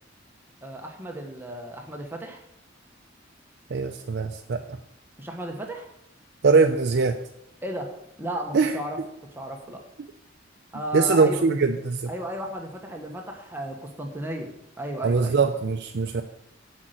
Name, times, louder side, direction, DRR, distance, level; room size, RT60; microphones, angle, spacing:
voice 1, 0.6-2.4 5.2-5.9 7.6-9.0 9.4-9.8 10.7-11.5 12.1-14.5 14.8-15.4, right 1 dB, 10° right, 2 dB, 1.0 m, -34 dB
voice 2, 3.7-4.6 6.4-7.2 8.5-8.7 10.9-12.1 15.0-16.2, right 4 dB, 60° right, 5 dB, 0.5 m, -22 dB
8.3 x 5.3 x 7.7 m, 0.80 s
head